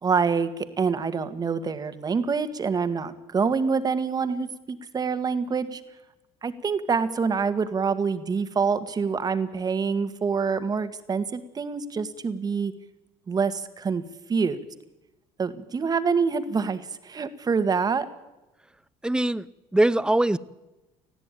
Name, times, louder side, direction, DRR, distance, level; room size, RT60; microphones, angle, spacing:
voice 1, 0.0-5.8 6.4-12.7 13.3-14.0 14.3-14.6 15.4-18.1, right 5 dB, 30° right, 10 dB, 1.7 m, -26 dB
voice 2, 19.0-19.4 19.7-20.4, right 1 dB, 5° right, 18 dB, 0.7 m, -21 dB
20.0 x 14.5 x 9.2 m, 1.0 s
supercardioid pair, 90°, 13 cm